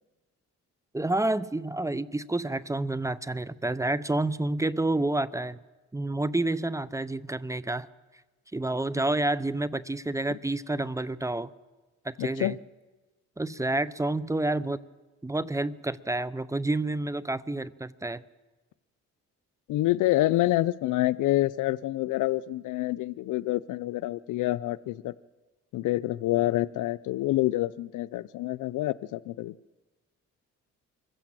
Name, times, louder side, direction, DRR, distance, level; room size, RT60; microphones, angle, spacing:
voice 1, 0.9-5.6 5.9-7.9 8.5-11.5 12.0-12.6 13.4-14.8 15.2-18.2, right 2 dB, 10° right, 17 dB, 0.7 m, -29 dB
voice 2, 12.2-12.6 19.7-25.1 25.7-29.5, left 16 dB, 85° left, 19 dB, 0.6 m, -27 dB
24.5 x 15.0 x 7.5 m, 1.2 s
cardioid pair, 90°, 30 cm